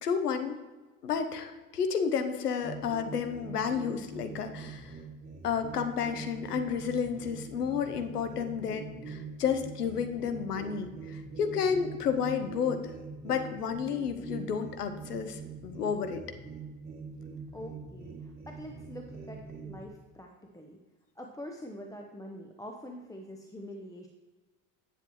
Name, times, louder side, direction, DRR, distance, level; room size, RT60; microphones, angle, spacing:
voice 1, 0.0-0.6 1.0-4.9 5.4-12.9 13.2-16.2, left 7 dB, 90° left, 8 dB, 0.8 m, -31 dB
sound 1, 2.6-19.9, right 4 dB, 20° right, 2.0 m, -44 dB
voice 2, 17.5-20.8 21.2-24.1, equal, 10° left, 2 dB, 0.8 m, -45 dB
10.0 x 7.3 x 3.1 m, 1.2 s
hypercardioid pair, 70°, 45 cm